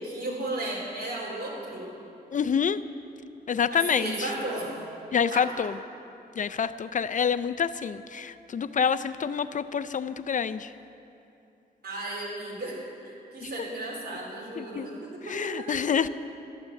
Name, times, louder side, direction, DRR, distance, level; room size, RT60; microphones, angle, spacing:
voice 1, 0.0-1.9 3.7-4.9 5.3-5.6 11.8-15.8, right 2 dB, 65° right, -3 dB, 4.3 m, -35 dB
voice 2, 2.3-2.8 3.5-4.3 5.1-5.7 6.4-10.7 13.4-13.5 14.6-14.9 15.3-16.1, left 7 dB, 50° left, 12 dB, 0.4 m, -27 dB
13.0 x 11.5 x 7.9 m, 2.8 s
wide cardioid pair, 105°, 17 cm